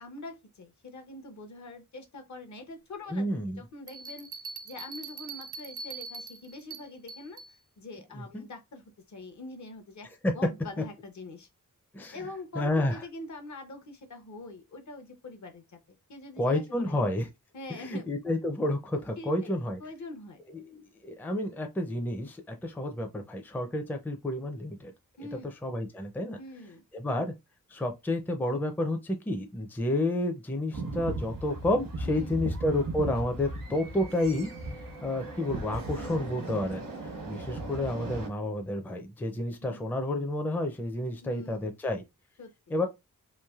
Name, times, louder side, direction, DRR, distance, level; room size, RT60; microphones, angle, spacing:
voice 1, 0.0-3.3 3.6-4.3 4.6-10.1 10.3-11.5 12.1-17.0 17.5-18.1 19.2-20.4 25.2-25.5 26.4-26.8 32.0-32.4 36.0-36.3 39.6-39.9 41.2-41.8 42.4-42.5, left 2 dB, 60° left, 0.7 m, -44 dB
voice 2, 3.1-3.6 8.1-8.4 10.2-10.3 11.9-12.2 12.5-13.0 16.4-17.3 17.7-19.8 20.6-24.9 25.6-26.4 26.9-27.3 27.7-34.5 35.0-36.9 37.3-42.0 42.7-42.9, left 1 dB, 5° left, 0.4 m, -30 dB
Bell, 3.9-7.5, right 4 dB, 65° right, 0.5 m, -42 dB
sound 1, 30.7-38.3, right 2 dB, 80° right, 1.0 m, -37 dB
3.1 x 2.5 x 2.3 m
wide cardioid pair, 95°, 33 cm